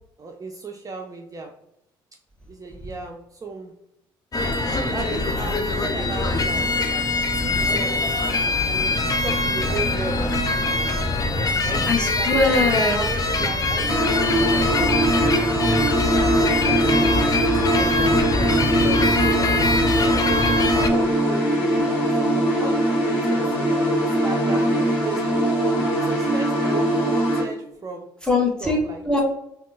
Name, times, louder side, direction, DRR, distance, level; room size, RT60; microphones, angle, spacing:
voice 1, 0.2-1.5 2.5-3.7 4.8-6.7 7.3-7.9 8.3-11.0 11.7-12.3 12.9-14.2 14.5-15.1 15.4-15.9 16.4-18.1 18.4-20.3 20.7-25.4 25.9-28.1 28.6-29.0, right 4 dB, 30° right, 2 dB, 0.5 m, -36 dB
sound 1, 4.3-20.9, left 2 dB, 30° left, 0.5 m, -23 dB
voice 2, 11.9-13.0 28.2-28.8 29.0-29.2, left 2 dB, 10° left, -1 dB, 1.0 m, -22 dB
sound 2, 13.9-27.4, right 1 dB, 85° left, 1.0 m, -21 dB
3.5 x 2.4 x 2.4 m, 0.81 s
hypercardioid pair, 55°, 12 cm